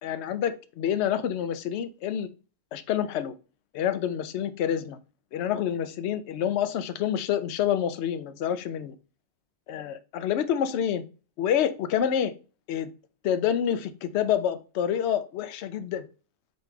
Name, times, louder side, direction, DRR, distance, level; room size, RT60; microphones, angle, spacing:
voice 1, 0.0-2.3 2.7-3.3 3.7-5.0 5.3-9.0 9.7-11.0 11.4-12.3 12.7-12.9 13.2-16.1, left 9 dB, 65° left, 0.8 m, -27 dB
5.2 x 4.2 x 2.3 m
omnidirectional pair, 1.4 m